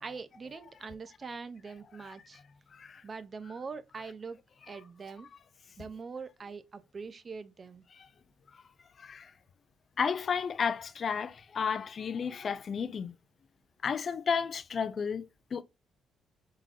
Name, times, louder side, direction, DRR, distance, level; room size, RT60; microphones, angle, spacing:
voice 1, 0.0-2.4 3.0-4.4 4.7-5.3 5.8-7.8, right 5 dB, 40° right, 0.4 m, -43 dB
voice 2, 2.0-2.4 2.7-3.0 7.9-8.1 8.5-8.6 9.0-9.3 10.0-13.1 13.8-15.6, left 6 dB, 50° left, 0.3 m, -33 dB
3.7 x 2.9 x 2.4 m
cardioid pair, 90°, 0 cm